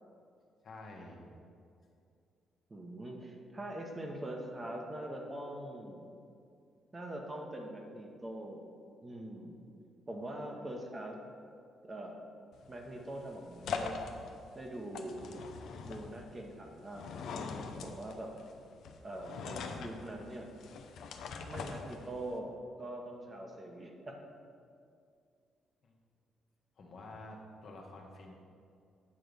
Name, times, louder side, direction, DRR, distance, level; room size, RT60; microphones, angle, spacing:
voice 1, 0.6-1.2 25.8-25.9 26.8-28.3, left 2 dB, 55° left, 0 dB, 1.3 m, -49 dB
voice 2, 2.7-6.1 6.9-8.7 9.0-9.6 10.1-11.2 11.8-12.2 12.7-14.0 14.5-15.4 15.8-17.1 17.3-18.3 19.0-20.5 21.5-24.2, right 1 dB, 25° right, 1 dB, 1.1 m, -43 dB
sound 1, 12.5-22.4, left 5 dB, 75° left, 0.6 m, -43 dB
8.3 x 3.8 x 6.7 m, 2.4 s
cardioid pair, 90°, 0 cm